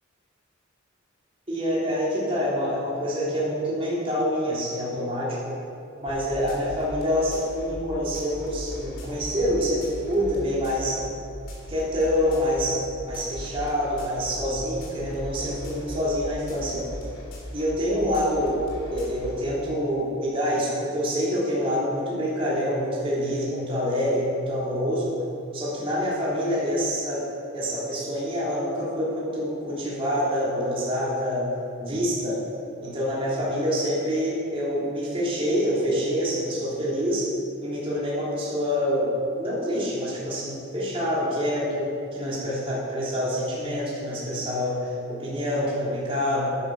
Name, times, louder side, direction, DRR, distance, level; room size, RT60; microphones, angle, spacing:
voice 1, 1.5-5.5 6.0-11.0 11.7-16.8 17.5-18.6 18.9-25.1 25.5-27.2 27.5-31.4 31.8-32.4 32.8-37.3 37.6-39.1 39.4-46.6, equal, 30° right, -8 dB, 3.4 m, -26 dB
sound 1, 6.1-19.4, left 1 dB, 70° left, 3.1 m, -39 dB
12.0 x 10.0 x 5.5 m, 2.6 s
head